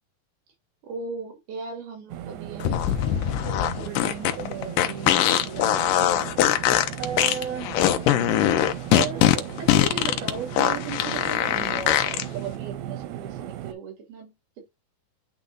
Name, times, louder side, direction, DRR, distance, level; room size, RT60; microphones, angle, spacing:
voice 1, 0.8-7.7 8.6-14.3, right 6 dB, 70° right, 4.1 m, -36 dB
sound 1, 2.1-13.7, right 12 dB, 90° right, 3.0 m, -37 dB
sound 2, 2.6-12.2, left 12 dB, 80° left, 2.0 m, -22 dB
9.9 x 3.5 x 4.0 m
omnidirectional pair, 4.6 m